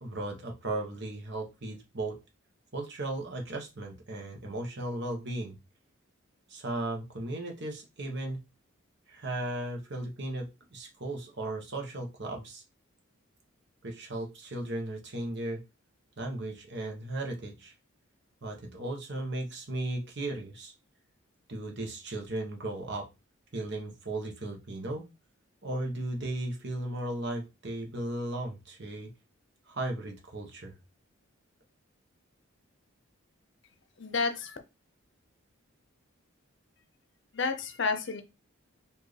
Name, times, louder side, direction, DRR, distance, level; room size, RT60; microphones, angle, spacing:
voice 1, 0.0-2.1 2.7-5.6 6.5-8.4 9.1-10.5 10.7-12.6 13.8-15.6 16.2-17.7 18.4-20.7 21.5-23.0 23.5-25.1 25.6-29.1 29.7-30.7, right 1 dB, 55° right, 2 dB, 1.2 m, -36 dB
voice 2, 34.0-34.6 37.3-38.2, left 4 dB, 55° left, 8 dB, 0.6 m, -30 dB
4.5 x 2.7 x 3.3 m, 0.26 s
head